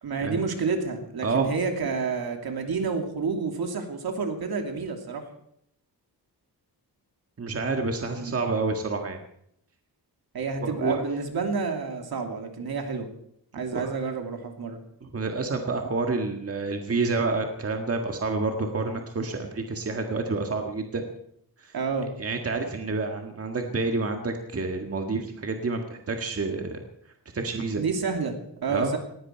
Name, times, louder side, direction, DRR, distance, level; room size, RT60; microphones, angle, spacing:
voice 1, 0.0-5.2 8.1-8.3 10.3-13.1 13.5-14.8 21.7-22.1 27.8-29.0, right 5 dB, 65° right, 4 dB, 2.8 m, -29 dB
voice 2, 7.4-9.2 10.6-11.0 13.7-13.9 15.0-21.0 21.6-21.7 22.2-26.8 27.3-27.8 28.7-28.9, right 3 dB, 35° right, 4 dB, 1.7 m, -28 dB
19.0 x 16.5 x 4.5 m, 0.72 s
wide cardioid pair, 150°, 40 cm